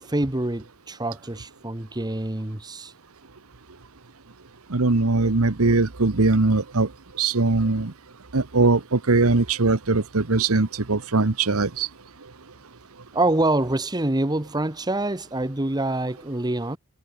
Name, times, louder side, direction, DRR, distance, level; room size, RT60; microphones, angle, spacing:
voice 1, 0.0-2.9 13.1-16.8, right 2 dB, 20° right, 1.2 m, -26 dB
voice 2, 4.7-6.9 7.2-7.9 8.3-11.9, right 3 dB, 90° right, 1.2 m, -21 dB
head